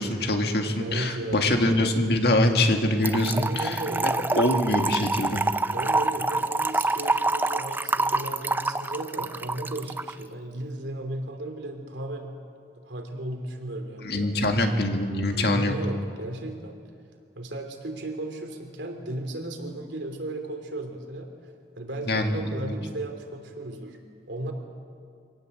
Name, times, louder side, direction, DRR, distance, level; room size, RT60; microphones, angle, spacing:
voice 1, 0.0-5.4 14.0-15.8 22.1-22.7, left 1 dB, 65° left, 4 dB, 2.1 m, -24 dB
voice 2, 0.8-1.6 3.2-4.5 5.7-12.3 12.7-14.5 15.3-16.8 17.3-21.3 21.8-24.0 24.3-24.5, right 1 dB, 90° right, 4 dB, 3.2 m, -35 dB
Trickle dribble / Fill (with liquid), 3.0-10.1, right 2 dB, 10° right, 0.5 m, -26 dB
25.0 x 18.0 x 8.0 m, 2.2 s
head